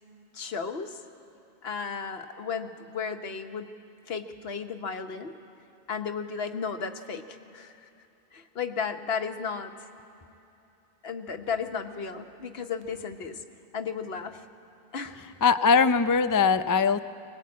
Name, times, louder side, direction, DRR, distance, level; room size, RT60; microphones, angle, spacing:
voice 1, 0.3-1.0 1.6-3.7 4.1-5.4 5.9-7.9 8.3-9.7 11.0-13.4 13.7-14.4 14.9-15.3, left 6 dB, 70° left, 8 dB, 1.3 m, -34 dB
voice 2, 15.4-17.0, left 5 dB, 30° left, 11 dB, 0.4 m, -21 dB
22.0 x 19.5 x 8.5 m, 2.9 s
omnidirectional pair, 1.1 m